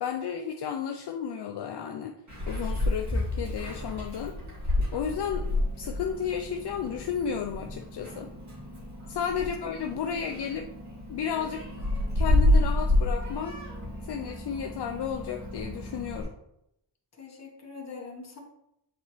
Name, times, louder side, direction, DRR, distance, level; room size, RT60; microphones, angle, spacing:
voice 1, 0.0-2.2 2.5-4.3 4.9-5.5 5.8-8.3 9.1-10.7 11.1-11.6 12.2-13.5 14.0-16.3, left 7 dB, 65° left, 4 dB, 0.5 m, -33 dB
Meow, 2.3-16.2, left 1 dB, 40° right, 2.2 m, -30 dB
voice 2, 10.1-10.5 17.2-18.4, left 4 dB, 35° left, 0 dB, 1.2 m, -44 dB
8.1 x 4.1 x 3.1 m, 0.83 s
wide cardioid pair, 150°, 43 cm